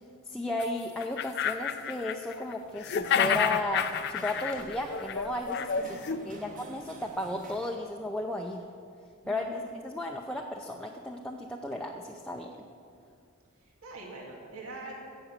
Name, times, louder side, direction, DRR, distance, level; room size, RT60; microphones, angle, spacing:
voice 1, 0.3-8.6 9.3-12.5, left 1 dB, 5° left, 0 dB, 0.5 m, -34 dB
sound 1, 0.6-0.7 1.0-2.5 2.8-6.2, left 7 dB, 50° left, 0.5 m, -30 dB
sound 2, 2.6-7.9, right 1 dB, 40° right, 1.3 m, -50 dB
voice 2, 5.8-6.5 9.2-9.6 13.6-14.9, right 2 dB, 85° right, -1 dB, 2.2 m, -44 dB
16.0 x 6.3 x 7.5 m, 2.4 s
head